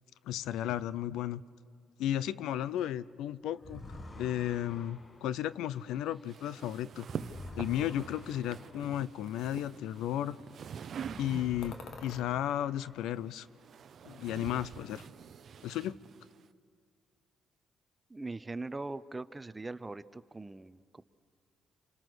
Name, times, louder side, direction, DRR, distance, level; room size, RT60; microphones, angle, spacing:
voice 1, 0.3-1.4 2.0-7.1 7.6-10.4 11.2-11.8 12.0-13.5 14.0-15.1 15.6-16.0, left 12 dB, 90° left, 17 dB, 0.5 m, -34 dB
monster traveling, 3.6-10.5 10.8-13.5, left 2 dB, 30° left, 1.5 m, -50 dB
sound 1, 6.3-11.9 12.9-16.5, right 8 dB, 60° right, 0.7 m, -46 dB
Ping Pong Ball Drop, 11.6-12.3 12.9-13.8 14.1-14.9, left 4 dB, 70° left, 2.1 m, -52 dB
voice 2, 18.1-21.0, right 2 dB, 20° right, 14 dB, 0.7 m, -41 dB
27.5 x 27.5 x 6.3 m, 2.1 s
cardioid pair, 90°, 0 cm